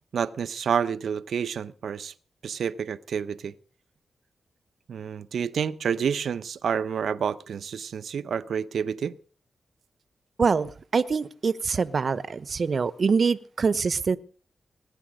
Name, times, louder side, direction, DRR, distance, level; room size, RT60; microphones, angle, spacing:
voice 1, 0.1-2.1 2.4-3.5 4.9-9.2, right 7 dB, 80° right, 14 dB, 0.8 m, -29 dB
voice 2, 10.4-14.2, right 5 dB, 55° right, 16 dB, 1.0 m, -24 dB
19.5 x 10.0 x 6.4 m, 0.42 s
cardioid pair, 65°, 0 cm